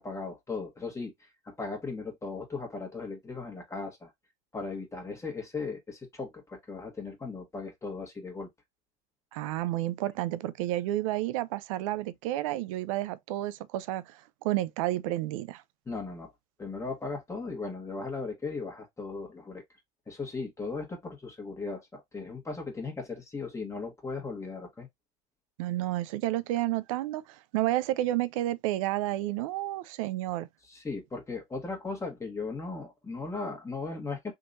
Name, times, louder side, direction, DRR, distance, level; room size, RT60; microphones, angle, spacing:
voice 1, 0.0-4.1 4.5-8.5 15.9-16.3 16.6-19.6 20.1-24.9 30.7-34.3, left 3 dB, 20° left, 1.3 m, -37 dB
voice 2, 9.3-15.6 25.6-30.5, right 15 dB, 90° right, 0.4 m, -31 dB
3.7 x 3.0 x 2.6 m
supercardioid pair, 100°, 16 cm